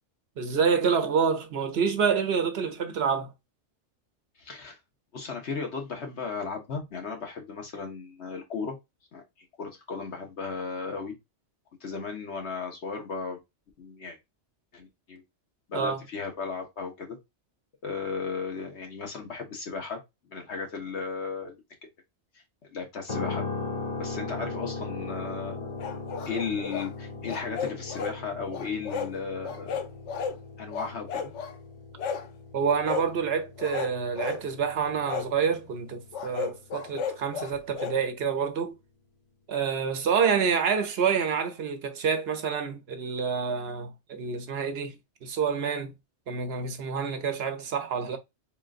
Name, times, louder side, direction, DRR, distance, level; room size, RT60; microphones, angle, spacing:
voice 1, 0.4-3.3 15.7-16.0 24.4-24.5 32.5-38.7 39.5-45.0 45.2-45.9 46.3-48.2, right 6 dB, 65° right, 0.9 m, -27 dB
voice 2, 4.4-4.8 5.1-8.8 9.1-11.2 11.8-13.4 13.8-14.2 14.7-15.2 15.7-17.2 17.8-21.6 22.6-23.4 24.0-25.8 26.3-29.8 30.6-31.3, left 5 dB, 75° left, 1.4 m, -35 dB
sound 1, 23.1-37.1, left 3 dB, 35° left, 0.6 m, -39 dB
sound 2, 25.8-26.9 27.3-28.2 28.5-29.1 29.4-30.4 30.7-31.5 32.0-32.3 32.8-33.1 33.6-34.4 35.1-35.3 36.1-38.0, left 6 dB, 90° left, 1.0 m, -34 dB
3.7 x 3.7 x 2.4 m
omnidirectional pair, 1.2 m